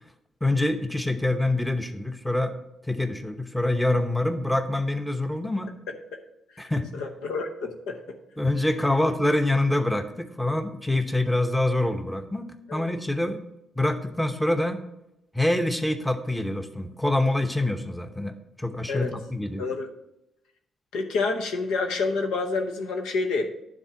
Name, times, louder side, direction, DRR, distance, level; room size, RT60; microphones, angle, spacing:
voice 1, 0.4-2.6 2.8-5.7 6.6-6.9 8.4-12.4 12.7-13.4 13.8-14.8 15.3-19.6, left 1 dB, 5° left, 8 dB, 0.8 m, -25 dB
voice 2, 6.6-8.2 12.7-12.9 18.9-19.1 19.6-19.9 20.9-23.5, left 3 dB, 80° left, 3 dB, 0.8 m, -28 dB
9.9 x 3.6 x 5.8 m, 0.86 s
supercardioid pair, 55°, 0 cm